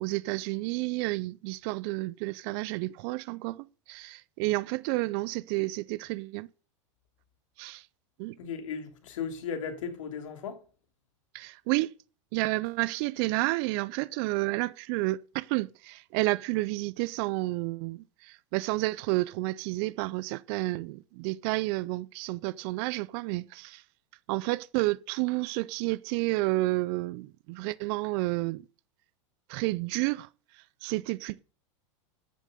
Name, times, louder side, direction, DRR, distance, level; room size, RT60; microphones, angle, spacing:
voice 1, 0.0-6.5 7.6-7.9 8.2-8.4 11.3-11.9 12.3-23.8 24.3-28.6 29.5-31.4, right 21 dB, 50° right, 0.5 m, -30 dB
voice 2, 8.4-10.6, left 6 dB, 85° left, 3.0 m, -36 dB
13.5 x 7.2 x 6.8 m
supercardioid pair, 130°, 16 cm